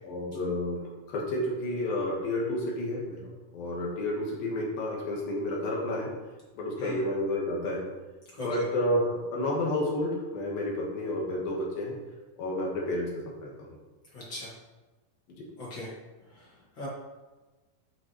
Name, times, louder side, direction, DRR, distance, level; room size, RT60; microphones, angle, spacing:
voice 1, 0.0-6.1 6.6-7.8 8.4-11.9 12.4-13.5 15.4-15.5, left 1 dB, 75° left, -3 dB, 3.3 m, -30 dB
voice 2, 14.1-14.5 15.6-15.9 16.3-16.9, left 2 dB, 40° left, -6 dB, 2.0 m, -39 dB
11.0 x 6.4 x 3.2 m, 1.2 s
omnidirectional pair, 4.3 m